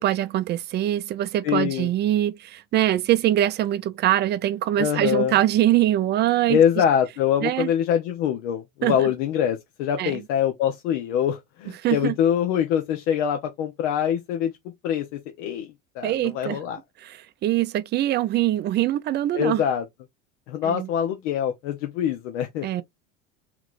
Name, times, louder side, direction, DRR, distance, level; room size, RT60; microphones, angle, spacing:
voice 1, 0.0-6.6 7.4-7.7 8.8-9.1 10.0-10.2 11.8-12.2 16.0-16.6 17.0-19.6 20.6-20.9 22.6-22.8, right 13 dB, 30° right, 0.4 m, -23 dB
voice 2, 1.4-1.9 4.8-5.4 6.5-14.5 14.8-16.8 19.3-19.8 20.5-22.7, left 9 dB, 85° left, 0.9 m, -24 dB
3.0 x 3.0 x 3.9 m
supercardioid pair, 120°, 35 cm